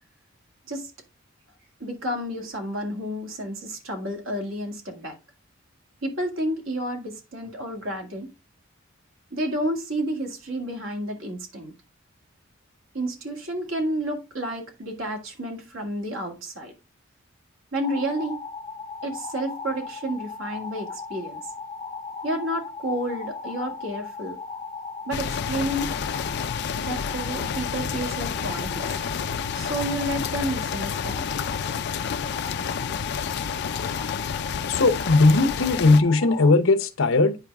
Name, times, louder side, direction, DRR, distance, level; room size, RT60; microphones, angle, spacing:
voice 1, 1.8-5.2 6.0-8.3 9.3-11.7 12.9-16.7 17.7-18.4 19.0-21.4 22.2-24.4 25.1-25.9 26.7-28.9 29.5-31.4, right 1 dB, 75° right, 2.0 m, -30 dB
sound 1, 17.8-36.5, left 4 dB, 25° left, 1.1 m, -37 dB
sound 2, 25.1-36.0, left 7 dB, 55° left, 0.4 m, -30 dB
voice 2, 34.7-37.4, left 3 dB, 75° left, 0.8 m, -18 dB
9.1 x 4.8 x 3.4 m
head